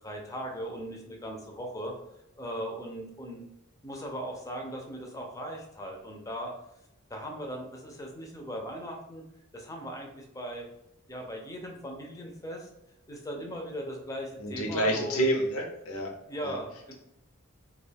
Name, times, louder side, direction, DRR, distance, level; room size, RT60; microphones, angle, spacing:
voice 1, 0.0-1.9 2.4-3.4 3.8-6.5 7.1-9.2 9.5-10.6 11.1-12.7 13.1-15.2 16.3-16.9, equal, 15° left, 1 dB, 0.5 m, -38 dB
voice 2, 14.4-16.1 16.4-16.6, right 1 dB, 80° left, 0 dB, 0.7 m, -28 dB
2.3 x 2.3 x 3.3 m, 0.82 s
head